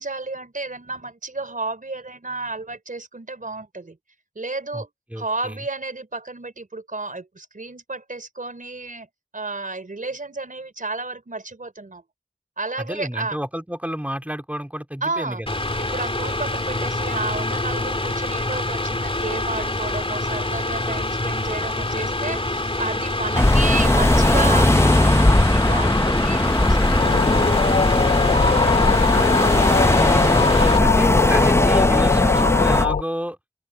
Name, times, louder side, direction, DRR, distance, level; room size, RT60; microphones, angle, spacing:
voice 1, 0.0-4.0 4.3-4.9 5.1-9.1 9.3-12.0 12.6-13.4 15.0-15.4 15.8-29.0, right 3 dB, 75° right, 4.6 m, -32 dB
voice 2, 5.1-5.6 12.9-15.6 29.8-33.4, equal, 10° right, 3.9 m, -30 dB
Mechanical fan, 15.5-30.8, left 2 dB, 40° left, 3.3 m, -26 dB
sound 1, 23.3-32.8, left 1 dB, 20° left, 0.7 m, -18 dB
sound 2, 27.0-33.0, left 5 dB, 80° left, 0.5 m, -21 dB
open air
wide cardioid pair, 50°, 14 cm